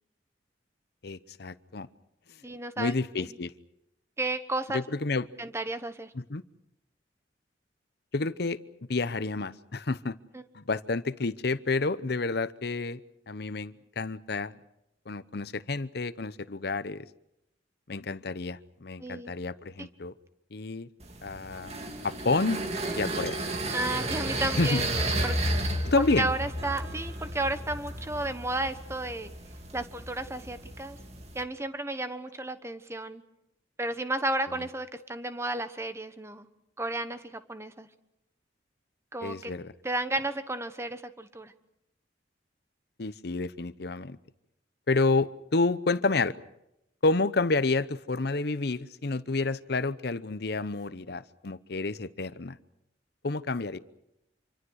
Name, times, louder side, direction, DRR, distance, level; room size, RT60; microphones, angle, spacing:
voice 1, 1.0-1.9 2.8-3.5 4.7-5.3 6.1-6.4 8.1-8.6 8.9-10.2 10.5-13.0 13.3-14.6 15.1-17.1 17.9-20.1 20.5-20.9 21.2-22.6 22.9-23.4 24.6-24.8 25.8-26.3 39.2-39.7 43.0-44.2 44.9-46.4 47.0-52.6 53.2-53.8, left 3 dB, 60° left, 15 dB, 0.8 m, -29 dB
voice 2, 2.4-3.3 4.2-4.8 5.4-6.1 10.3-10.4 19.0-19.3 19.8-19.9 23.7-25.7 26.2-29.3 29.7-31.0 31.3-33.2 33.8-36.5 36.8-37.9 39.1-39.5 39.8-41.5, right 2 dB, 15° right, 10 dB, 1.1 m, -33 dB
sound 1, 21.0-31.4, right 1 dB, 35° right, 2.3 m, -33 dB
27.0 x 24.5 x 6.4 m, 0.85 s
head